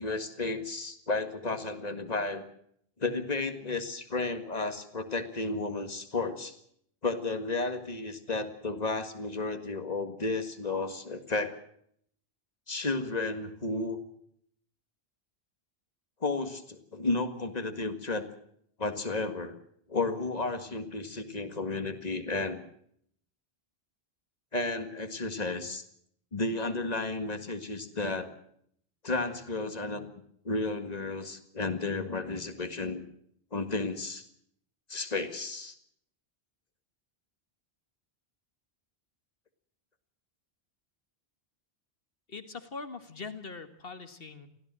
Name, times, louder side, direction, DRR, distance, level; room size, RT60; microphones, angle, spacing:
voice 1, 0.0-2.4 3.0-6.6 7.0-11.6 12.7-14.0 16.2-18.3 18.8-19.6 19.9-22.6 24.5-25.8 26.3-28.3 29.0-30.1 30.4-33.0 33.5-34.3 34.9-35.8, left 3 dB, 40° left, 8 dB, 2.0 m, -32 dB
voice 2, 42.3-44.5, left 4 dB, 65° left, 9 dB, 2.0 m, -42 dB
24.5 x 16.0 x 7.6 m, 0.67 s
omnidirectional pair, 1.1 m